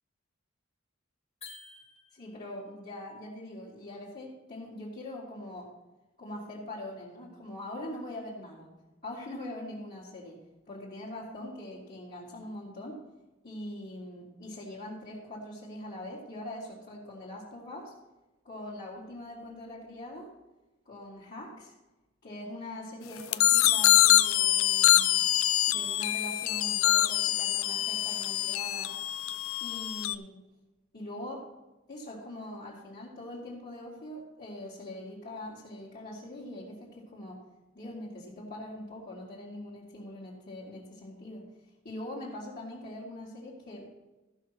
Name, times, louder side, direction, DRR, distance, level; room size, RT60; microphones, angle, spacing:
sound 1, 1.4-2.5, left 4 dB, 30° left, 1.3 m, -49 dB
voice 1, 2.1-5.7 6.2-8.7 9.0-10.4 10.7-13.0 13.4-17.9 18.4-20.3 20.9-21.7 22.2-25.2 25.7-28.9 29.6-30.3 30.9-31.5 31.9-37.4 37.7-41.4 41.8-43.9, left 1 dB, 50° left, -8 dB, 2.4 m, -42 dB
sound 2, 23.3-30.1, left 14 dB, 90° left, 0.5 m, -25 dB
14.0 x 5.7 x 5.8 m, 1.1 s
head